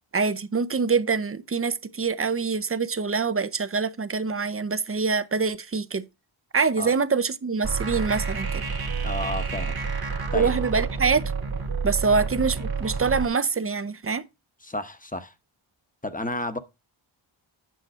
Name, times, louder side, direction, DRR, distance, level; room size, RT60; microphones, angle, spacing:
voice 1, 0.1-6.1 6.5-8.6 10.3-11.3 11.8-14.2, right 5 dB, 30° right, 0.5 m, -25 dB
sound 1, 7.6-13.3, right 5 dB, 45° right, 1.3 m, -29 dB
voice 2, 9.0-9.8 10.3-10.5 14.6-15.3 16.0-16.6, left 1 dB, 15° left, 0.9 m, -31 dB
9.2 x 5.8 x 4.3 m
wide cardioid pair, 100°, 49 cm